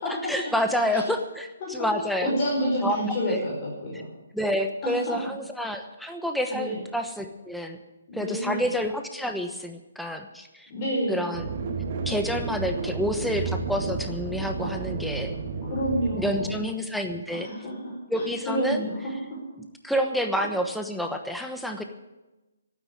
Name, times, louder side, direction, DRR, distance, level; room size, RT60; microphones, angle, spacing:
voice 1, 0.0-2.3 2.8-3.0 3.3-3.4 4.3-7.8 8.1-10.7 11.1-11.5 12.0-15.3 16.2-17.5 18.1-18.8 19.8-21.8, equal, ahead, 5 dB, 1.1 m, -28 dB
voice 2, 2.2-4.1 4.8-5.2 6.5-6.8 8.1-8.7 10.7-11.3 14.6-14.7 15.7-16.6 17.3-19.0 19.3-19.4 20.3-20.5, equal, 35° left, -3 dB, 5.1 m, -29 dB
sound 1, 11.3-16.6, right 4 dB, 45° right, 1.9 m, -32 dB
12.0 x 9.4 x 9.7 m, 1.1 s
hypercardioid pair, 155°, 0 cm